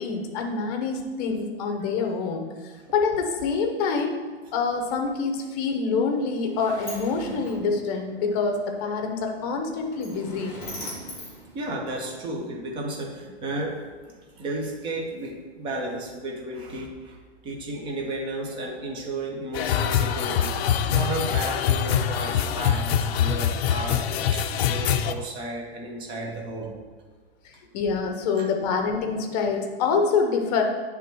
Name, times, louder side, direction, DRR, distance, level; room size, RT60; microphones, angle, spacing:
voice 1, 0.0-4.2 4.5-10.6 27.4-30.6, left 5 dB, 35° left, 4 dB, 0.8 m, -26 dB
Sliding door, 5.9-12.3, left 1 dB, 10° left, 1.5 m, -42 dB
voice 2, 11.5-17.2 17.4-20.6 20.9-24.1 24.3-26.7 28.4-28.5, right 2 dB, 15° right, 0 dB, 0.6 m, -33 dB
sound 1, 19.5-25.1, left 8 dB, 65° left, 0.5 m, -24 dB
8.3 x 3.5 x 4.4 m, 1.4 s
supercardioid pair, 165°, 33 cm